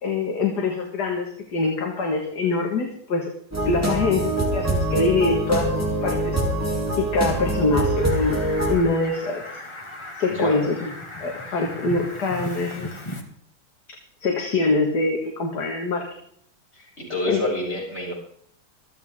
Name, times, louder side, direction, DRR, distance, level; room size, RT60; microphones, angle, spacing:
voice 1, 0.0-3.3 3.7-6.4 7.0-8.4 8.7-9.4 10.2-10.9 11.2-13.0 14.2-16.1 17.3-17.4, left 3 dB, 55° left, 2 dB, 2.3 m, -24 dB
sound 1, 3.5-8.8, right 1 dB, 5° right, 3.1 m, -24 dB
Fowl, 8.0-13.2, left 2 dB, 15° left, 1.7 m, -37 dB
voice 2, 10.3-10.6 16.7-18.1, left 1 dB, 30° left, -6 dB, 7.8 m, -28 dB
26.5 x 8.9 x 3.7 m, 0.66 s
omnidirectional pair, 2.3 m